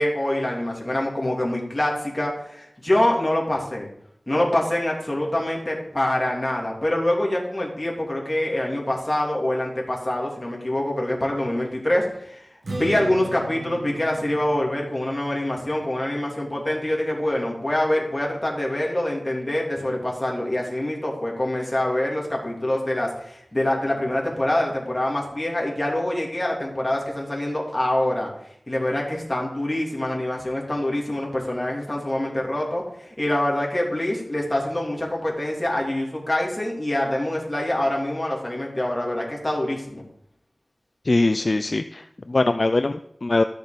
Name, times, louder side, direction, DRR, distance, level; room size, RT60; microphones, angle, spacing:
voice 1, 0.0-3.9 4.3-28.3 28.7-40.0, left 1 dB, 20° left, -2 dB, 3.1 m, -25 dB
Strum, 12.6-18.9, right 2 dB, 70° right, 1.7 m, -39 dB
voice 2, 41.1-43.4, left 2 dB, 50° left, 10 dB, 0.4 m, -22 dB
13.5 x 6.6 x 5.2 m, 0.73 s
wide cardioid pair, 75°, 0 cm